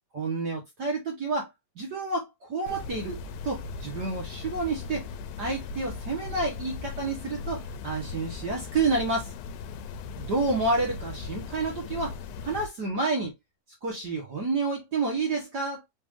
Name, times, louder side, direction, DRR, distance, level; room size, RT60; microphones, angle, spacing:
voice 1, 0.1-1.5 1.7-5.1 5.4-9.3 10.1-12.2 12.4-13.3 13.8-15.9, right 3 dB, 55° right, 1.2 m, -29 dB
sound 1, 2.7-12.7, left 5 dB, 90° left, 2.0 m, -38 dB
5.1 x 2.6 x 3.5 m
omnidirectional pair, 3.4 m